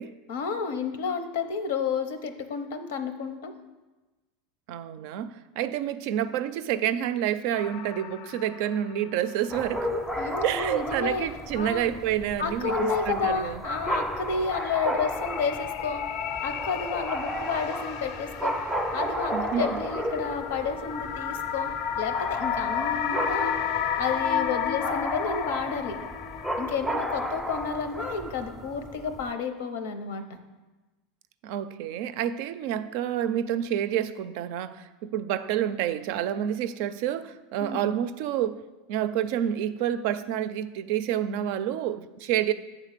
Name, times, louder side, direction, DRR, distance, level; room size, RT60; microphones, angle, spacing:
voice 1, 0.3-3.5 10.2-11.9 12.4-16.0 16.4-26.0 26.6-30.2 37.6-37.9, left 5 dB, 85° left, 8 dB, 0.7 m, -31 dB
voice 2, 4.7-10.0 10.4-13.6 19.3-19.7 31.4-38.6 38.9-42.5, right 10 dB, 65° right, 12 dB, 0.4 m, -28 dB
sound 1, 7.5-9.1 9.4-9.5 13.9-26.8, left 8 dB, 55° left, 0.4 m, -33 dB
sound 2, 9.5-29.3, equal, 5° left, 0.5 m, -33 dB
8.2 x 3.6 x 6.6 m, 1.2 s
supercardioid pair, 130°, 0 cm